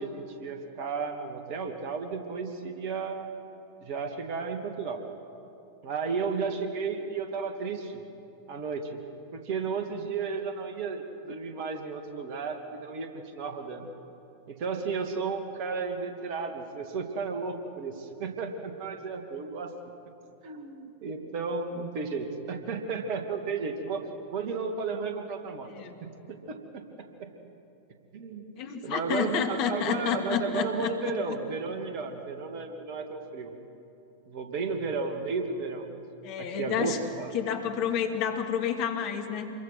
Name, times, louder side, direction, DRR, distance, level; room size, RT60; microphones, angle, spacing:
voice 1, 0.0-3.3 3.8-5.0 5.8-8.0 8.5-9.0 9.3-13.9 14.5-19.7 20.4-24.0 24.3-25.7 26.0-27.3 28.1-28.4 28.8-33.5 34.3-36.0 36.4-37.3, right 4 dB, 45° right, 5 dB, 2.4 m, -33 dB
voice 2, 25.7-26.0 28.6-31.2 36.2-37.0 37.3-39.5, left 7 dB, 45° left, 4 dB, 2.4 m, -30 dB
27.0 x 22.5 x 6.2 m, 2.9 s
figure-of-eight pair, 90°, 0 cm